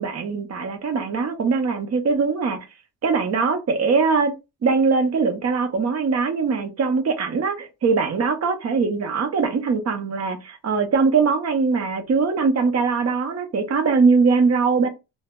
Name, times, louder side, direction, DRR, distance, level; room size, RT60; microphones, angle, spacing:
voice 1, 0.0-2.7 3.0-4.3 4.6-14.9, right 4 dB, 35° right, 0.6 m, -21 dB
2.0 x 2.0 x 3.4 m
cardioid pair, 130°, 47 cm